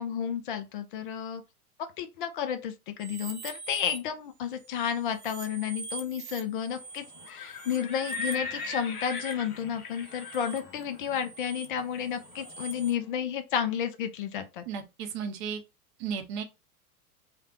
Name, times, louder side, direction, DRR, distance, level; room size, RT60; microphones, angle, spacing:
voice 1, 0.0-1.4 2.0-14.6, left 8 dB, 35° left, 0.4 m, -32 dB
sound 1, 3.0-4.0 4.4-12.9, right 5 dB, 70° right, 0.9 m, -44 dB
Livestock farm animals working animals, 7.1-13.0, left 4 dB, 65° left, 0.9 m, -40 dB
voice 2, 14.7-15.6 16.0-16.4, right 7 dB, 30° right, 0.7 m, -34 dB
3.2 x 2.1 x 2.8 m
figure-of-eight pair, 95°, 46 cm